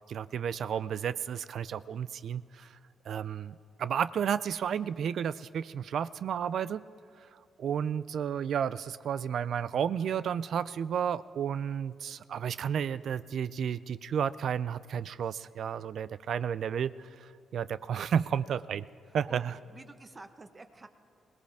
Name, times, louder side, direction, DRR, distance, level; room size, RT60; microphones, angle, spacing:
voice 1, 0.1-2.7 3.1-6.8 7.6-18.9 19.1-19.6, right 8 dB, 65° right, 16 dB, 0.3 m, -32 dB
voice 2, 19.1-19.4 19.7-20.9, right 3 dB, 30° right, 8 dB, 0.9 m, -49 dB
22.5 x 18.0 x 3.5 m, 2.4 s
cardioid pair, 85°, 0 cm